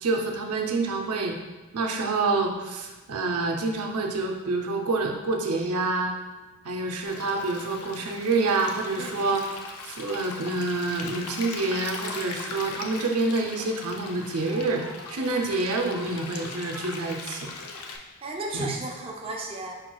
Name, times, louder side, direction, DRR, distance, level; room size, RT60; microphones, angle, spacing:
voice 1, 0.0-1.4 1.7-6.1 6.6-9.4 9.8-14.8 15.1-17.5 18.5-18.7, right 3 dB, 85° right, 2 dB, 0.6 m, -27 dB
Stream, 7.0-18.0, left 4 dB, 85° left, 0.6 m, -39 dB
voice 2, 18.2-19.8, right 2 dB, 25° right, -1 dB, 0.5 m, -35 dB
4.9 x 4.6 x 2.3 m, 1.2 s
head